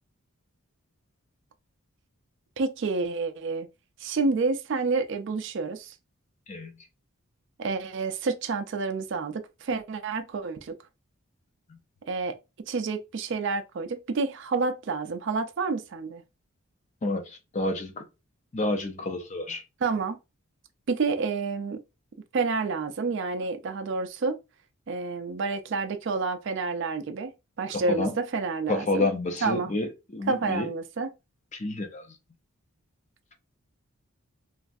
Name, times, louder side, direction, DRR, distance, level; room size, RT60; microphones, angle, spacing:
voice 1, 2.6-3.7 4.0-5.9 7.6-10.8 12.1-12.4 12.7-16.2 19.8-20.2 20.9-21.8 22.3-24.4 24.9-27.3 27.6-29.1 29.4-29.7 30.3-31.1, right 4 dB, 55° right, 0.4 m, -29 dB
voice 2, 17.0-18.0 18.5-19.6 27.7-28.2 28.7-30.7 31.5-32.0, left 2 dB, 30° left, 0.4 m, -29 dB
3.1 x 2.4 x 2.5 m
head